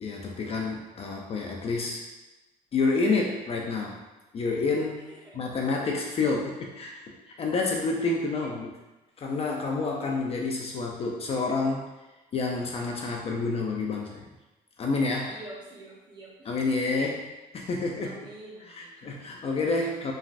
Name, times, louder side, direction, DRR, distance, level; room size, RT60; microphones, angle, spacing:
voice 1, 0.0-2.0 2.7-4.0 4.3-5.1 5.3-8.7 9.2-11.9 12.3-14.2 14.8-15.4 16.5-18.2 18.8-20.1, left 3 dB, 35° left, 0 dB, 0.4 m, -29 dB
voice 2, 5.0-5.4 15.2-16.7 18.0-19.2, right 2 dB, 25° right, -3 dB, 0.8 m, -47 dB
3.1 x 2.4 x 2.4 m, 1.1 s
cardioid pair, 110°, 17 cm